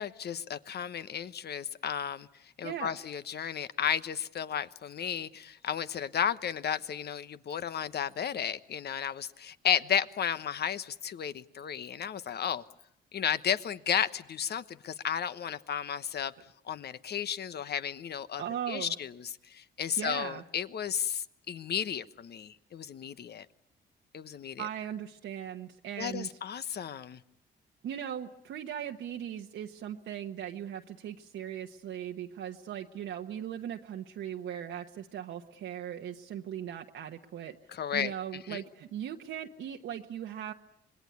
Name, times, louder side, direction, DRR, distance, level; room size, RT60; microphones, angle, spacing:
voice 1, 0.0-2.3 2.6-12.6 13.1-16.3 16.7-23.5 24.1-24.7 26.0-27.2 37.7-38.1 38.5-38.6, left 8 dB, 55° left, 14 dB, 1.1 m, -33 dB
voice 2, 2.6-3.0 18.4-18.9 20.0-20.4 24.6-26.4 27.8-37.5 37.9-40.5, right 10 dB, 75° right, 2 dB, 1.2 m, -38 dB
26.0 x 21.0 x 9.6 m, 0.78 s
cardioid pair, 90°, 20 cm